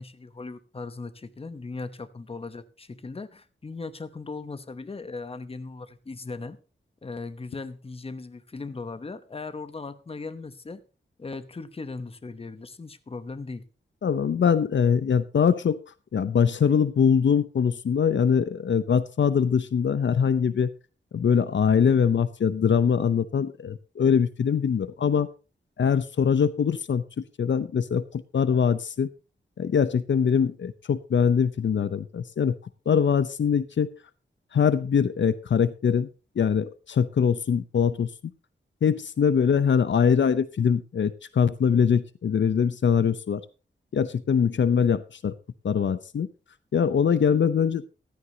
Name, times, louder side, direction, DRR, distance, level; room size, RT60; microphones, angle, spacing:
voice 1, 0.0-6.6 7.0-10.8 11.2-13.6, left 3 dB, 30° left, 0.9 m, -38 dB
voice 2, 14.0-15.8 16.1-20.7 21.1-25.3 25.8-27.0 27.4-29.1 29.6-32.5 32.9-33.9 34.5-36.1 36.4-38.1 38.8-43.4 43.9-45.3 45.6-46.3 46.7-47.8, left 7 dB, 70° left, 0.7 m, -23 dB
14.5 x 13.0 x 2.8 m
wide cardioid pair, 135°, 20 cm